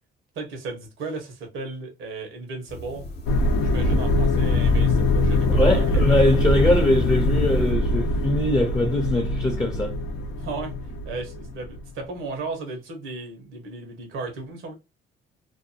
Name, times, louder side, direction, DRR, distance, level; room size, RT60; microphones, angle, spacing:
voice 1, 0.3-3.1 3.6-6.4 10.4-14.7, right 3 dB, 90° right, 1.0 m, -35 dB
sound 1, 2.7-7.7, equal, 55° left, 0.7 m, -33 dB
sound 2, 3.3-11.8, left 1 dB, 90° left, 0.6 m, -23 dB
voice 2, 5.5-10.0, left 1 dB, 20° left, 0.6 m, -22 dB
2.7 x 2.2 x 2.6 m
cardioid pair, 90°, 20 cm